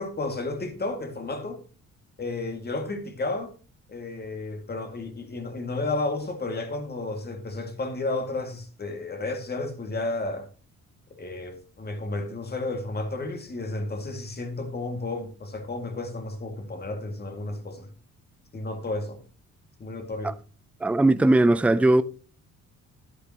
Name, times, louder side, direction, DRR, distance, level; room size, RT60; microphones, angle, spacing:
voice 1, 0.0-1.6 2.2-3.5 3.9-10.5 11.1-17.9 18.5-19.2 19.8-20.3, left 2 dB, 30° left, 2.1 m, -32 dB
voice 2, 20.8-22.0, right 2 dB, 5° right, 0.5 m, -19 dB
10.5 x 9.9 x 2.9 m
cardioid pair, 90°, 30 cm